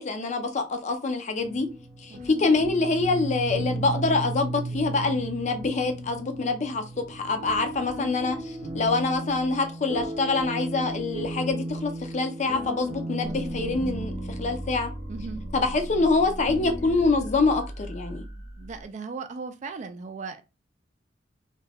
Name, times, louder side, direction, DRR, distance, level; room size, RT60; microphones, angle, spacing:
voice 1, 0.0-1.7 2.0-14.1 14.4-14.9 15.5-18.2, left 3 dB, 40° left, 0.5 m, -25 dB
sound 1, 1.4-17.3, right 1 dB, 75° right, 0.7 m, -35 dB
sound 2, 13.2-18.9, right 1 dB, 90° left, 0.8 m, -39 dB
voice 2, 13.2-13.8 15.1-15.4 18.6-20.4, right 4 dB, 40° right, 0.3 m, -38 dB
2.3 x 2.2 x 3.3 m
head